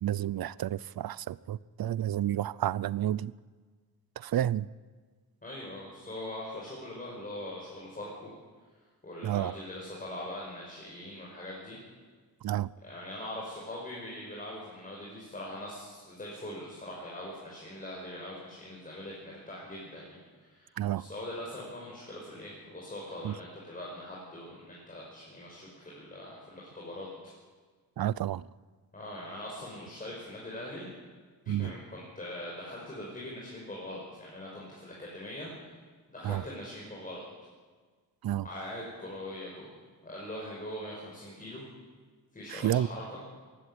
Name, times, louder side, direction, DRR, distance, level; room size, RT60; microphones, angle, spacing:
voice 1, 0.0-3.3 4.2-4.7 9.2-9.5 12.4-12.7 20.8-21.0 23.2-23.4 28.0-28.5 31.5-31.7 36.2-36.4 38.2-38.5 42.5-42.9, right 12 dB, 65° right, 20 dB, 0.6 m, -30 dB
voice 2, 5.4-8.3 9.0-11.8 12.8-27.1 28.9-30.9 31.4-35.8 36.1-37.2 38.4-41.7 42.3-43.2, left 1 dB, 20° left, -4 dB, 5.5 m, -42 dB
22.0 x 16.5 x 9.8 m, 1.5 s
wide cardioid pair, 170°, 40 cm